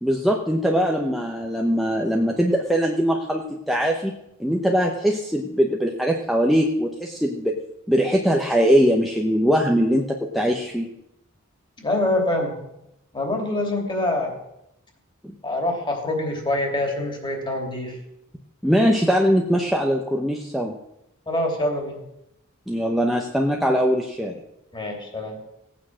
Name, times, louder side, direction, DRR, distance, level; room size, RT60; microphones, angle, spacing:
voice 1, 0.0-4.1 4.4-7.6 7.9-10.9 15.2-15.3 18.6-20.8 22.7-24.4, equal, ahead, 0 dB, 0.9 m, -21 dB
voice 2, 11.8-12.6 13.1-14.3 15.4-18.0 21.3-22.0 24.7-25.4, left 1 dB, 25° left, 2 dB, 2.9 m, -25 dB
16.5 x 8.8 x 6.3 m, 0.83 s
head